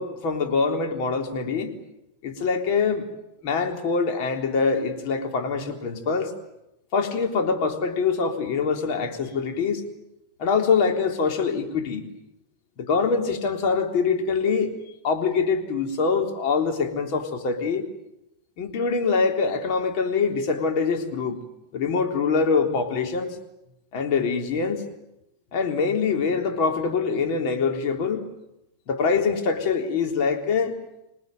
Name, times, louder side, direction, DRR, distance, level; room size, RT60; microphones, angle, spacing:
voice 1, 0.0-1.8 2.2-3.1 3.4-6.3 6.9-9.8 10.4-12.1 12.8-14.7 15.0-17.9 18.6-21.4 21.7-23.4 23.9-24.9 25.5-28.3 28.9-30.8, left 5 dB, 45° left, 4 dB, 3.6 m, -24 dB
27.0 x 20.0 x 9.3 m, 0.90 s
figure-of-eight pair, 90°, 0 cm